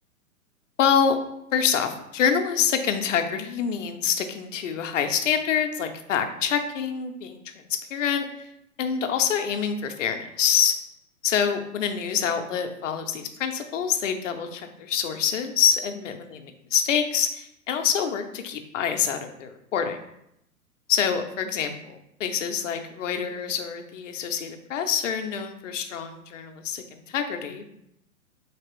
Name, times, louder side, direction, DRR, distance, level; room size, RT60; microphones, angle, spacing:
voice 1, 0.8-1.2 1.5-7.5 7.9-8.5 8.8-10.8 11.2-16.5 16.7-20.0 20.9-27.7, left 7 dB, 55° left, 6 dB, 0.5 m, -26 dB
3.3 x 2.9 x 2.9 m, 0.79 s
hypercardioid pair, 135°, 46 cm